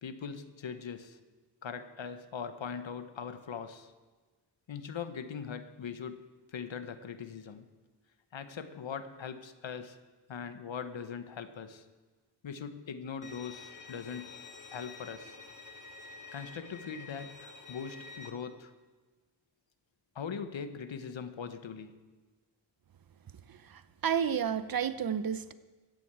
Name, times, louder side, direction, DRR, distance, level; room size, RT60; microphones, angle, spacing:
voice 1, 0.0-1.2 1.6-3.9 4.7-6.3 6.5-7.7 8.3-10.0 10.3-11.8 12.4-14.4 14.7-15.4 16.3-18.7 20.1-22.0, left 6 dB, 80° left, 1.1 m, -41 dB
Bowed string instrument, 13.2-18.3, left 4 dB, 45° left, 1.4 m, -49 dB
voice 2, 23.5-25.5, right 8 dB, 50° right, 0.7 m, -31 dB
14.5 x 7.9 x 8.7 m
wide cardioid pair, 110°, 45 cm